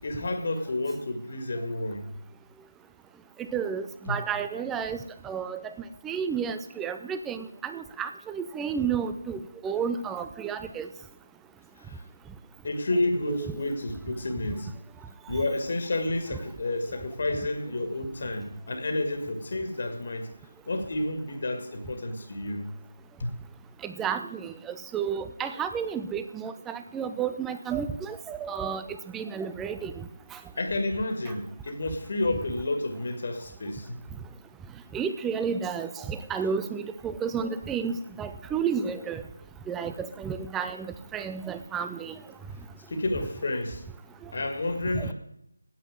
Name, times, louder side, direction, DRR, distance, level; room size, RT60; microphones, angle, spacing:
voice 1, 0.0-2.1 4.1-4.2 11.9-12.0 12.6-14.7 15.3-20.3 20.7-22.7 23.2-23.3 30.6-34.0 42.9-43.8 44.3-45.1, left 2 dB, 45° left, 1.9 m, -30 dB
voice 2, 3.5-5.0 5.2-5.7 6.0-10.9 13.3-13.6 23.8-28.8 29.1-30.0 30.3-30.4 34.9-39.2 39.7-42.2 44.9-45.1, right 7 dB, 5° right, 0.4 m, -31 dB
9.5 x 8.2 x 8.7 m
figure-of-eight pair, 165°, 0 cm